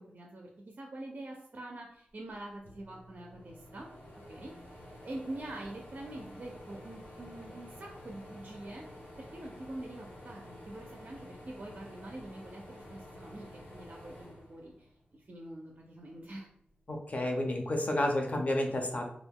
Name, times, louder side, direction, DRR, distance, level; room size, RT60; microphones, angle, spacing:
voice 1, 0.0-3.9 4.3-4.5 5.0-8.9 9.2-16.5, right 1 dB, 45° right, 0 dB, 0.4 m, -45 dB
sound 1, 2.3-2.4 2.6-15.2 15.7-16.8, left 1 dB, 85° left, 1.3 m, -50 dB
voice 2, 16.9-19.0, left 1 dB, 45° left, 3 dB, 0.5 m, -30 dB
2.3 x 2.1 x 3.5 m, 0.70 s
wide cardioid pair, 90°, 3 cm